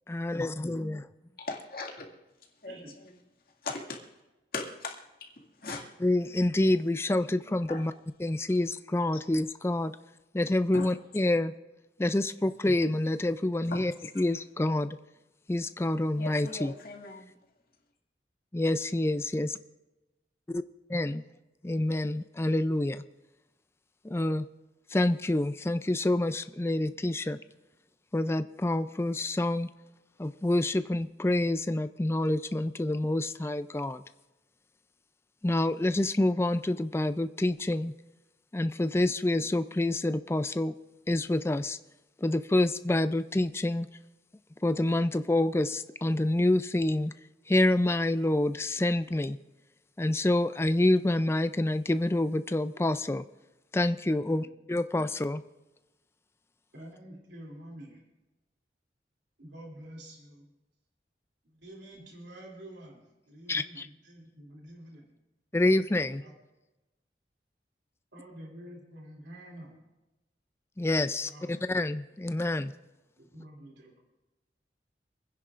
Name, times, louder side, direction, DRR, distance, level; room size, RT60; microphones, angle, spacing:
voice 1, 0.1-1.1 6.0-7.9 8.2-9.9 10.3-11.5 12.0-15.0 15.5-16.7 18.5-19.5 20.5-20.6 20.9-21.2 21.6-23.0 24.0-24.4 24.9-27.4 28.1-29.7 30.2-34.0 35.4-37.9 38.5-40.7 41.1-41.8 42.2-43.9 44.6-47.1 47.5-49.4 50.0-53.3 53.7-55.4 63.5-63.9 65.5-66.2 70.8-72.7, left 1 dB, 15° left, 12 dB, 0.4 m, -27 dB
voice 2, 1.4-2.1 2.6-3.1 3.6-4.0 4.5-5.9 7.7-7.8 10.7-10.9 13.7-13.8 16.2-17.3, left 3 dB, 55° left, 0 dB, 2.1 m, -39 dB
voice 3, 2.7-3.0 54.2-54.5 56.7-58.0 59.4-60.5 61.4-65.1 66.2-66.3 68.1-69.8 71.0-71.5 73.2-74.0, right 1 dB, 85° right, -1 dB, 2.8 m, -48 dB
27.0 x 10.5 x 2.5 m, 1.0 s
head